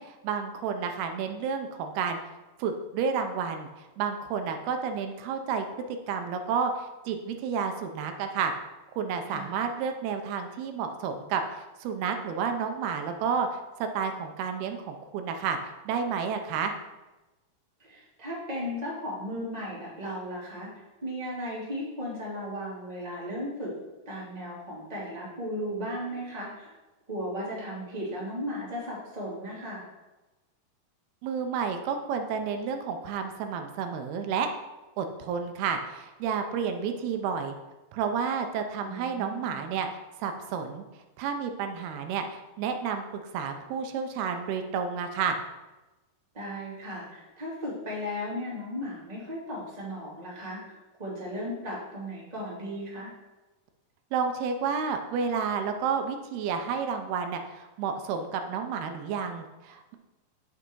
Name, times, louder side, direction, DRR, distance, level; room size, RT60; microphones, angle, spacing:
voice 1, 0.0-2.2 2.6-8.5 9.0-15.6 15.9-16.7 31.2-34.5 35.0-37.5 37.9-39.9 40.2-40.8 41.2-45.4 54.1-60.0, right 6 dB, 85° right, 6 dB, 2.7 m, -31 dB
voice 2, 9.3-9.6 17.8-20.7 21.0-23.7 24.1-26.7 27.1-29.8 38.8-39.6 46.3-53.1, equal, 15° right, -6 dB, 2.0 m, -36 dB
8.4 x 6.7 x 4.6 m, 1.1 s
omnidirectional pair, 4.5 m